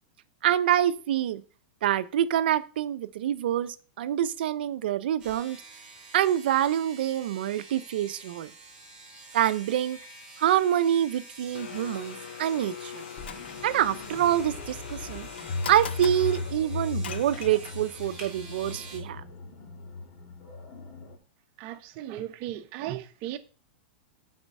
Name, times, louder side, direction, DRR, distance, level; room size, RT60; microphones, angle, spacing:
voice 1, 0.4-1.4 1.8-5.6 6.1-8.5 9.3-10.0 10.4-13.0 13.6-15.3 15.7-19.2, right 11 dB, 70° right, 0.7 m, -26 dB
sound 1, 5.2-19.0, right 3 dB, 10° right, 4.0 m, -48 dB
Domestic sounds home sounds, 11.5-18.0, left 10 dB, 85° left, 0.5 m, -41 dB
sound 2, 13.2-21.2, left 2 dB, 40° left, 2.0 m, -37 dB
voice 2, 21.6-23.4, right 12 dB, 40° right, 0.9 m, -36 dB
8.0 x 5.1 x 5.4 m
supercardioid pair, 155°, 6 cm